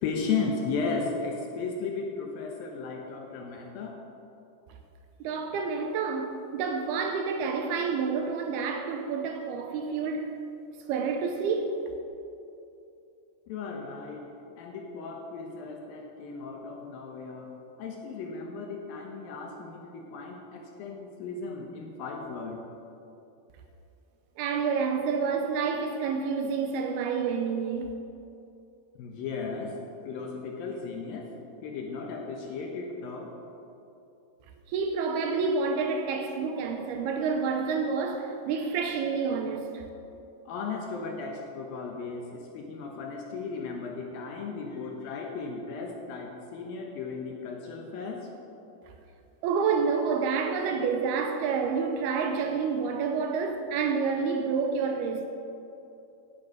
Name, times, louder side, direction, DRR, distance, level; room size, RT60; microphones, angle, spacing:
voice 1, 0.0-4.0 13.5-14.3 14.6-22.6 29.0-29.8 30.0-31.3 31.6-33.3 40.5-48.3, left 4 dB, 70° left, 2.4 m, -35 dB
voice 2, 5.2-10.3 10.9-11.9 24.4-27.9 34.7-39.8 49.4-55.3, right 5 dB, 75° right, 2.5 m, -28 dB
16.5 x 9.1 x 4.8 m
omnidirectional pair, 4.9 m